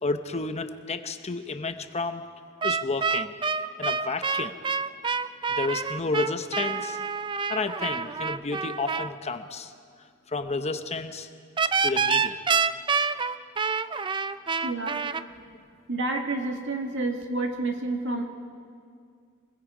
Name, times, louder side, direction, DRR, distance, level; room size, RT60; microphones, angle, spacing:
voice 1, 0.0-2.2 2.6-3.3 3.8-4.5 5.5-7.0 7.5-9.7 10.3-11.3 11.8-12.4, left 3 dB, 30° left, 8 dB, 0.8 m, -31 dB
sound 1, 2.6-9.1 11.6-15.2, right 5 dB, 20° right, 0.4 m, -27 dB
voice 2, 14.6-15.0 15.9-18.2, right 2 dB, 60° right, 3 dB, 2.0 m, -29 dB
26.5 x 21.5 x 5.0 m, 2.2 s
head